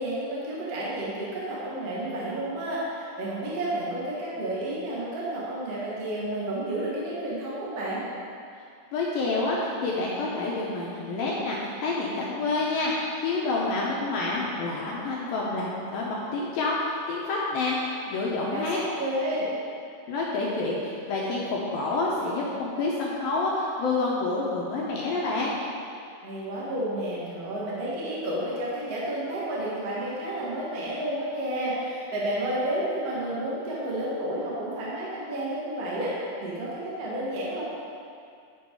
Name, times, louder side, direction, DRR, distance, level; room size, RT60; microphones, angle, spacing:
voice 1, 0.0-8.0 18.4-19.5 26.2-36.1 36.4-37.6, right 1 dB, 60° right, -7 dB, 0.9 m, -31 dB
voice 2, 8.9-18.8 20.1-25.5, left 3 dB, 75° left, -4 dB, 2.3 m, -28 dB
10.5 x 5.2 x 4.7 m, 2.4 s
omnidirectional pair, 4.9 m